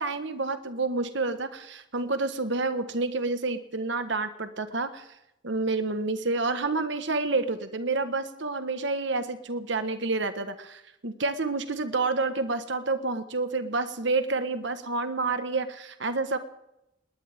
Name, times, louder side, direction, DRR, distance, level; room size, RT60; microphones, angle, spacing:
voice 1, 0.0-5.0 5.4-16.4, right 3 dB, 65° right, 9 dB, 1.5 m, -29 dB
20.5 x 19.0 x 3.7 m, 0.85 s
head